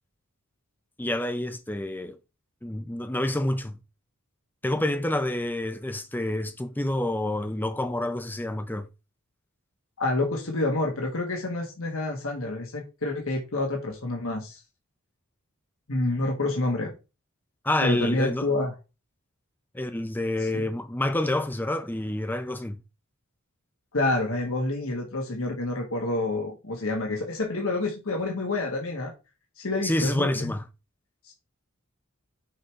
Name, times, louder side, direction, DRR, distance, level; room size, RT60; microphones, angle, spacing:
voice 1, 1.0-2.2 2.6-3.8 4.6-8.9 17.6-18.5 19.7-22.8 29.8-30.6, left 1 dB, 10° left, 0.6 m, -28 dB
voice 2, 10.0-14.6 15.9-16.9 17.8-18.7 20.5-20.7 23.9-29.1 29.6-30.5 31.2-31.3, left 2 dB, 70° left, 1.4 m, -28 dB
6.4 x 3.3 x 4.7 m
head